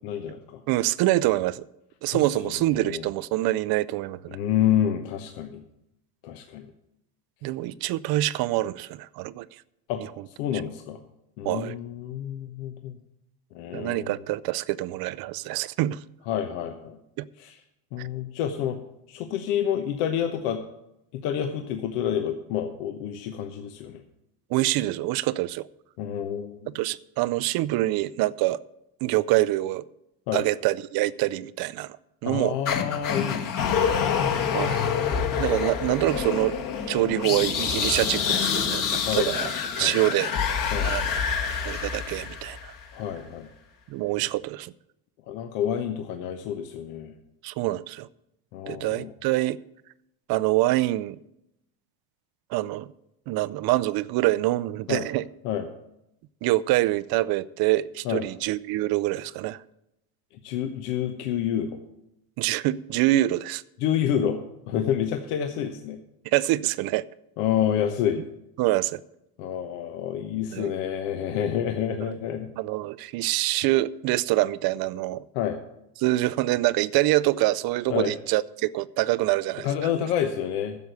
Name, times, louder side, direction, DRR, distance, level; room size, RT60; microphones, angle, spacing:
voice 1, 0.0-0.6 2.1-3.1 4.3-5.6 6.2-6.7 9.9-10.0 10.4-11.0 11.4-13.0 13.5-14.1 16.3-17.0 17.4-17.5 17.9-18.8 19.1-20.6 21.1-24.0 26.0-26.7 30.3-30.4 32.2-33.8 39.0-39.5 39.8-40.0 40.7-40.9 42.9-43.5 45.3-47.1 48.5-49.1 54.9-55.1 55.4-55.7 58.0-58.2 60.4-61.8 63.8-66.0 67.4-68.2 69.4-72.5 75.3-75.6 77.9-78.1 79.6-80.8, left 9 dB, 75° left, 1.1 m, -28 dB
voice 2, 0.7-1.6 2.0-4.4 7.4-9.5 11.4-11.8 13.7-16.0 17.2-17.3 24.5-25.7 26.7-28.6 29.0-29.8 30.3-32.0 32.2-32.6 34.5-34.8 35.4-36.6 36.9-39.5 39.8-40.3 40.8-41.2 41.6-42.7 43.9-44.7 47.4-48.1 48.7-49.6 50.3-51.2 52.5-52.9 53.3-55.3 56.4-59.6 62.4-63.6 66.3-67.0 68.6-69.0 70.5-70.7 72.0-72.1 72.6-75.2 76.0-79.7, right 16 dB, 50° right, 0.5 m, -25 dB
sound 1, 32.7-42.8, left 7 dB, 40° left, 1.7 m, -27 dB
10.5 x 7.0 x 8.0 m
supercardioid pair, 110°, 49 cm